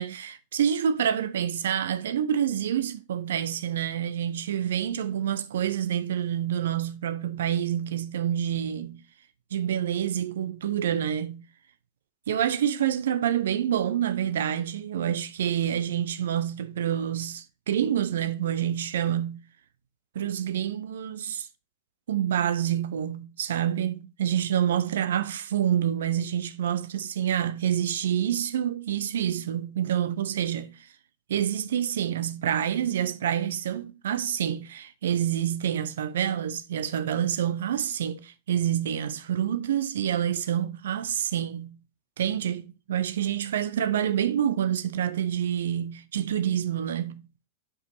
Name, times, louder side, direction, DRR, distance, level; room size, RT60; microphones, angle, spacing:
voice 1, 0.0-9.0 9.5-11.4 12.3-19.4 20.1-21.5 22.1-30.8 31.3-41.8 42.2-47.3, right 10 dB, 60° right, 0.5 m, -27 dB
7.3 x 5.2 x 2.5 m
figure-of-eight pair, 90°, 0 cm